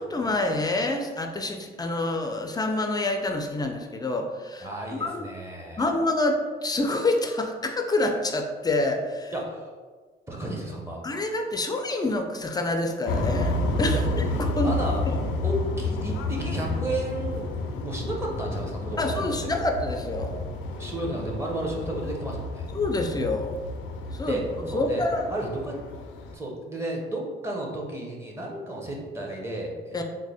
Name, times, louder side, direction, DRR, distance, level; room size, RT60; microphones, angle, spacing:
voice 1, 0.0-5.3 5.8-9.3 11.0-14.0 14.4-14.7 15.1-15.2 19.0-20.3 22.7-23.6 24.1-25.3 29.9-30.0, left 2 dB, 20° left, 4 dB, 0.4 m, -27 dB
voice 2, 4.6-5.8 9.3-9.7 10.3-11.0 14.6-15.1 15.4-17.5 17.8-19.5 20.8-22.7 24.3-24.4 24.7-25.8 26.2-30.0, right 1 dB, 15° right, -2 dB, 0.8 m, -33 dB
sound 1, 13.1-26.3, left 2 dB, 80° left, 0.4 m, -30 dB
3.5 x 2.1 x 3.4 m, 1.4 s
cardioid pair, 90°, 20 cm